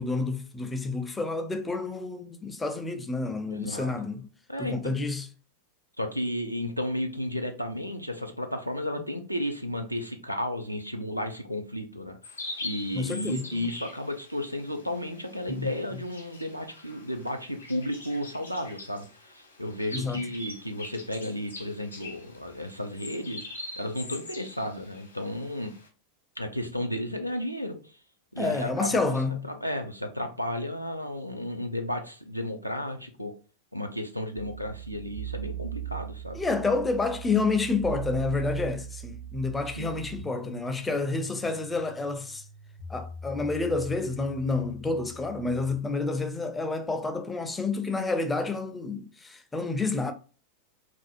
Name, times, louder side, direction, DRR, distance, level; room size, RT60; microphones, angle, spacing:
voice 1, 0.0-4.3 4.6-5.3 13.0-13.7 15.5-15.7 19.9-20.2 28.4-29.4 36.3-42.5 42.9-50.1, left 3 dB, 10° left, 0.4 m, -29 dB
voice 2, 3.5-3.9 4.5-4.9 6.0-12.2 12.6-23.5 23.8-25.7 26.4-27.9 28.3-29.1 29.4-33.3 33.7-36.4 39.8-39.9, left 1 dB, 90° right, 0.4 m, -33 dB
sound 1, 12.2-25.9, left 2 dB, 80° left, 0.5 m, -43 dB
sound 2, 34.4-45.8, right 7 dB, 60° right, 0.8 m, -40 dB
2.4 x 2.3 x 2.4 m
figure-of-eight pair, 90°, 0 cm